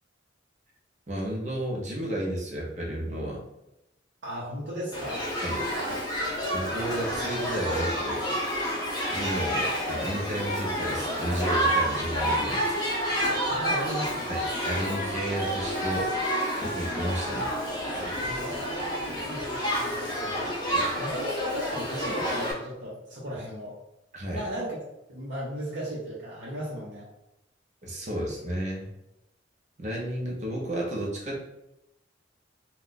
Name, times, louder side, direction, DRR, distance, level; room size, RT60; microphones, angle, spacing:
voice 1, 1.1-3.4 5.4-5.7 6.5-8.3 9.1-12.8 14.3-16.1 16.6-17.5 20.7-20.9 24.1-24.5 27.8-28.9 29.8-31.4, right 1 dB, 40° right, -2 dB, 0.7 m, -32 dB
voice 2, 4.2-5.3 13.5-14.3 18.2-20.4 21.0-23.8 24.3-24.8 25.1-27.1, equal, 65° right, -7 dB, 0.8 m, -36 dB
Shout / Human group actions, 4.9-22.5, equal, 25° left, 0.7 m, -29 dB
2.6 x 2.3 x 3.7 m, 0.87 s
head